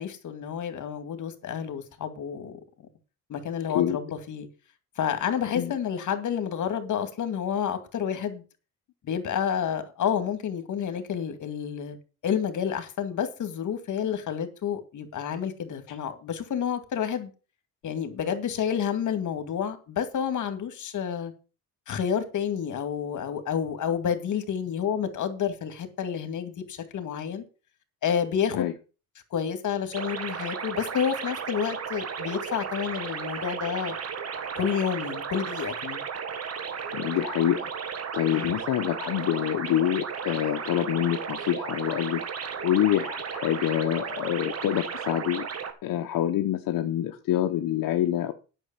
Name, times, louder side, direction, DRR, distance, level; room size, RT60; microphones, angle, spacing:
voice 1, 0.0-2.6 3.3-4.5 5.0-8.4 9.0-12.0 12.2-17.3 17.8-21.3 21.9-27.4 28.0-28.7 29.3-34.0 34.6-36.0 38.3-38.5, left 8 dB, 65° left, 2.2 m, -29 dB
sound 1, 29.9-45.7, right 6 dB, 50° right, 1.7 m, -34 dB
voice 2, 36.9-37.7 38.1-42.2 42.6-45.5 45.8-48.3, left 12 dB, 80° left, 1.0 m, -26 dB
9.9 x 6.4 x 7.4 m
cardioid pair, 130°, 33 cm